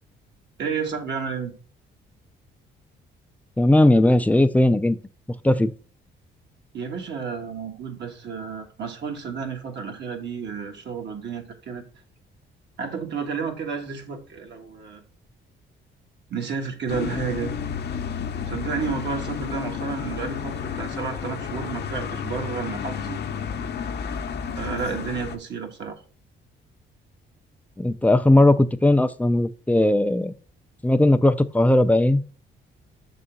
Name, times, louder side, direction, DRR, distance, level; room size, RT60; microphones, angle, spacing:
voice 1, 0.6-1.5 6.7-11.8 12.8-15.0 16.3-17.5 18.5-23.2 24.6-26.0, right 6 dB, 60° right, 1.5 m, -31 dB
voice 2, 3.6-5.0 5.4-5.7 27.8-30.3 30.8-32.2, left 1 dB, 5° left, 0.5 m, -18 dB
sound 1, 16.9-25.4, left 7 dB, 55° left, 0.8 m, -31 dB
6.7 x 4.0 x 3.8 m
cardioid pair, 90°, 20 cm